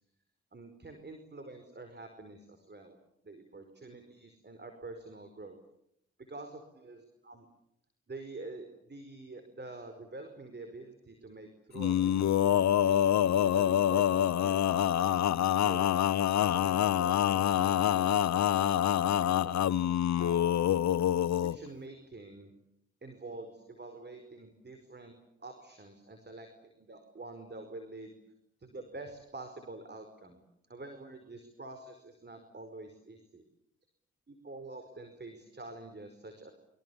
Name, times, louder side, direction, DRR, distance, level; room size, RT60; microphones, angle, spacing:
voice 1, 0.5-3.0 3.2-5.6 6.3-7.4 8.1-14.7 15.0-15.9 16.4-18.2 18.5-19.6 20.2-20.6 21.3-22.5 23.0-25.1 25.4-28.1 28.6-30.4 30.7-33.4 34.3-36.5, right 2 dB, 35° right, 7 dB, 5.1 m, -47 dB
Male singing, 11.8-21.6, left 10 dB, 70° left, 1.0 m, -26 dB
29.5 x 25.0 x 7.2 m, 0.78 s
supercardioid pair, 45°, 29 cm